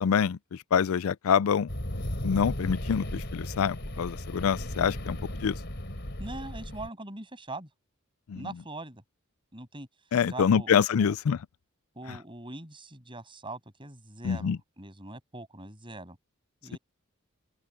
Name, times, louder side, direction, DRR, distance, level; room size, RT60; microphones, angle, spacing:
voice 1, 0.0-1.7 2.2-5.6 8.3-8.5 10.1-11.4 12.1-12.2 14.2-14.6, left 7 dB, 80° left, 0.4 m, -26 dB
sound 1, 1.7-6.9, left 1 dB, 55° left, 3.9 m, -35 dB
voice 2, 6.2-7.7 8.3-9.0 9.5-9.9 10.3-10.7 11.0-11.1 11.9-16.2 16.6-16.8, right 2 dB, 25° right, 8.0 m, -42 dB
head